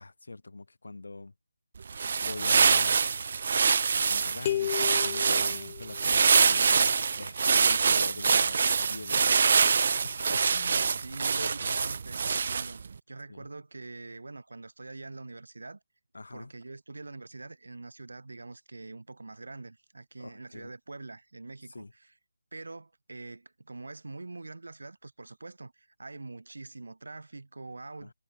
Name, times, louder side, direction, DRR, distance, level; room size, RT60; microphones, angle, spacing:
voice 1, 0.0-1.3 1.9-3.0 3.9-11.7 13.3-13.5 16.1-16.5 20.2-20.7 21.7-21.9 28.0-28.1, left 3 dB, 85° left, 7.8 m, -44 dB
sound 1, 1.8-12.9, right 5 dB, 40° right, 0.8 m, -25 dB
sound 2, 4.4-6.3, left 11 dB, 20° left, 0.6 m, -33 dB
voice 2, 11.0-15.8 16.3-22.1 22.5-28.1, right 3 dB, 85° right, 3.8 m, -44 dB
figure-of-eight pair, 175°, 0 cm